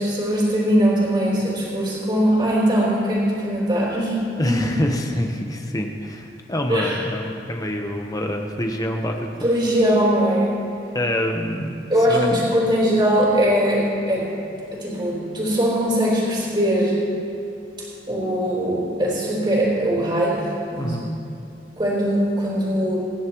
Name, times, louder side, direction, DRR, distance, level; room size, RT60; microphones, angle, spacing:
voice 1, 0.0-4.2 4.5-4.7 6.7-7.0 9.4-10.5 11.9-14.3 14.7-17.0 17.8-21.0 21.8-23.0, equal, 25° right, -6 dB, 3.8 m, -21 dB
voice 2, 4.4-9.5 10.9-12.4 20.8-21.1, left 1 dB, 20° left, 3 dB, 1.0 m, -26 dB
25.5 x 10.5 x 3.1 m, 2.7 s
head